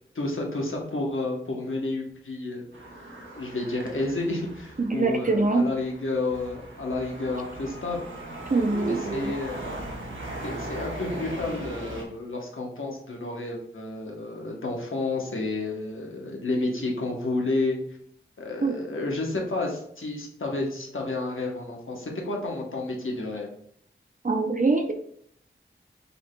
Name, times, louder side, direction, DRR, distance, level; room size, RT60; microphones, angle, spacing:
voice 1, 0.1-2.7 3.4-8.1 8.9-9.8 10.4-17.8 18.4-23.5, left 2 dB, 75° left, 0 dB, 1.0 m, -30 dB
sound 1, 2.7-12.0, right 1 dB, 70° right, 1.0 m, -39 dB
voice 2, 4.8-5.7 8.5-9.4 18.6-18.8 24.2-24.9, right 3 dB, 40° right, 4 dB, 0.5 m, -24 dB
5.7 x 3.8 x 2.2 m, 0.68 s
wide cardioid pair, 40°, 21 cm